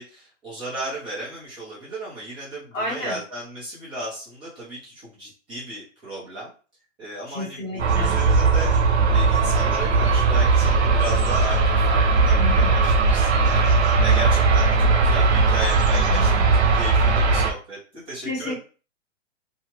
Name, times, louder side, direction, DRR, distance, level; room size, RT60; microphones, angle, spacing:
voice 1, 0.0-6.5 7.0-11.6 11.9-18.6, right 1 dB, 15° right, -7 dB, 0.7 m, -35 dB
voice 2, 2.7-3.2 7.3-8.2 12.4-12.7 14.8-14.9 16.1-16.5 17.0-17.1 18.2-18.6, left 1 dB, 20° left, -7 dB, 1.6 m, -31 dB
sound 1, 7.8-17.5, right 4 dB, 60° right, 0.8 m, -18 dB
2.8 x 2.3 x 2.9 m, 0.36 s
hypercardioid pair, 150°, 37 cm